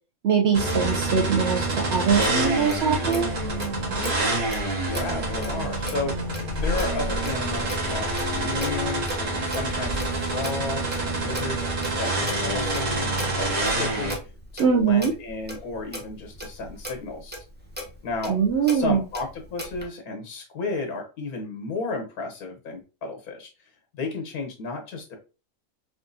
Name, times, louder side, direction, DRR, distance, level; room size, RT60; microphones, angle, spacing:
voice 1, 0.2-3.3 14.6-15.1 18.3-19.0, right 6 dB, 60° right, 1 dB, 0.8 m, -22 dB
sound 1, 0.5-14.2, right 2 dB, 85° right, 1.9 m, -27 dB
Clock, 2.1-19.9, left 1 dB, 10° right, 0.5 m, -37 dB
voice 2, 4.8-14.2 14.5-17.3 18.0-18.4 18.6-23.5 23.9-25.2, left 3 dB, 75° left, 4 dB, 1.5 m, -33 dB
4.6 x 2.5 x 2.6 m, 0.31 s
omnidirectional pair, 1.6 m